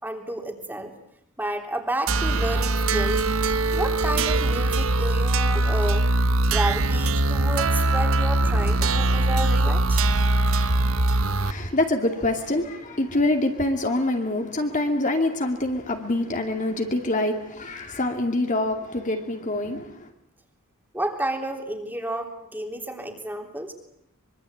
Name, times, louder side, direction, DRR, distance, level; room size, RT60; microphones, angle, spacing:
voice 1, 0.0-0.9 1.4-3.2 3.7-6.1 6.4-10.1 20.9-23.7, right 1 dB, 10° right, 3.3 m, -31 dB
sound 1, 2.1-11.5, right 2 dB, 65° right, 1.1 m, -22 dB
voice 2, 11.4-20.1, left 2 dB, 35° left, 2.5 m, -25 dB
25.0 x 23.5 x 8.7 m
head